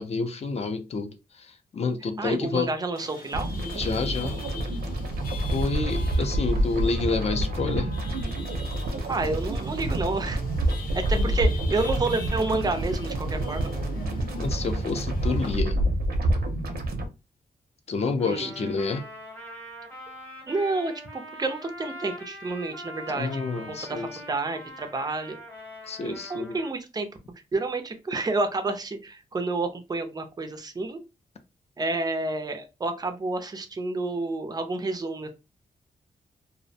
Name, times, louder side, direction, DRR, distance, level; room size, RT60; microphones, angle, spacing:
voice 1, 0.0-2.7 3.7-4.4 5.5-7.9 11.1-11.3 14.4-15.8 17.9-19.0 23.1-24.2 25.9-26.5, left 4 dB, 40° left, 0.4 m, -29 dB
voice 2, 2.2-3.5 9.1-10.4 10.9-13.7 18.2-18.7 20.4-23.4 23.7-25.4 26.0-27.1 27.5-31.0 31.8-35.3, right 3 dB, 25° right, 0.4 m, -29 dB
Chatter / Vehicle horn car horn honking / Traffic noise roadway noise, 2.9-15.5, left 4 dB, 70° left, 0.7 m, -44 dB
sound 1, 3.3-17.1, right 1 dB, 75° right, 0.6 m, -28 dB
Trumpet, 18.2-26.7, equal, 10° left, 0.8 m, -43 dB
2.4 x 2.0 x 2.6 m
wide cardioid pair, 150°, 16 cm